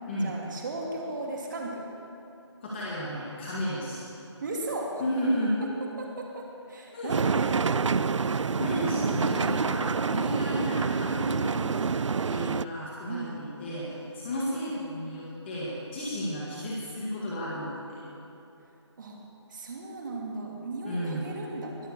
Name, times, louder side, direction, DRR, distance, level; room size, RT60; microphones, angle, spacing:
voice 1, 0.2-1.8 4.4-5.0 6.0-8.1 13.1-13.4 19.0-19.2 19.5-21.8, right 2 dB, 40° right, 0 dB, 2.7 m, -36 dB
voice 2, 2.6-4.0 5.0-5.5 6.9-7.1 8.6-18.0 20.9-21.3, equal, 20° left, -7 dB, 2.0 m, -33 dB
sound 1, 7.1-12.6, right 5 dB, 85° right, 0.4 m, -27 dB
21.5 x 7.7 x 6.9 m, 2.8 s
figure-of-eight pair, 165°, 15 cm